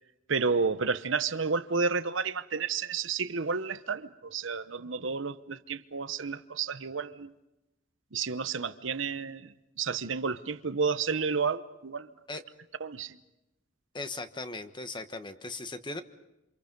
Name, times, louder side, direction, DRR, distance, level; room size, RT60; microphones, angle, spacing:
voice 1, 0.3-7.3 8.1-12.1 12.8-13.2, right 5 dB, 75° right, 1.0 m, -31 dB
voice 2, 13.9-16.0, left 2 dB, 25° left, 1.3 m, -38 dB
28.0 x 27.0 x 5.4 m
head